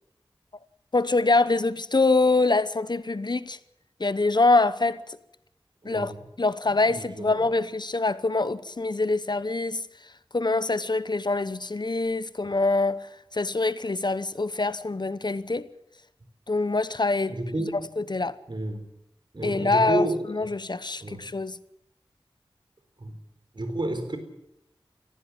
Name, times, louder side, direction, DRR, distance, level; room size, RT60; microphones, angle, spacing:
voice 1, 0.9-3.6 4.0-5.0 5.8-6.1 6.4-9.8 10.3-15.7 16.5-17.7 18.0-18.4 19.4-21.6, left 3 dB, 50° left, 0.9 m, -25 dB
voice 2, 5.8-6.2 6.9-7.0 7.3-7.4 17.3-17.8 18.5-18.9 19.3-20.2 21.0-21.3 23.0-23.1 23.5-24.2, right 1 dB, 55° right, 4.2 m, -30 dB
19.0 x 15.5 x 9.6 m
wide cardioid pair, 50°, 10 cm